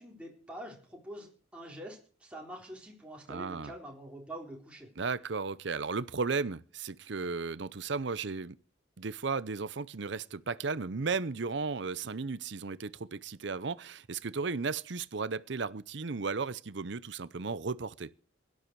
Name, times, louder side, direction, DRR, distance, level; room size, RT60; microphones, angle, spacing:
voice 1, 0.0-4.9, right 1 dB, 5° right, 4.0 m, -46 dB
voice 2, 3.3-3.7 5.0-8.6 9.0-18.1, right 4 dB, 60° right, 0.7 m, -35 dB
17.5 x 11.5 x 4.7 m
head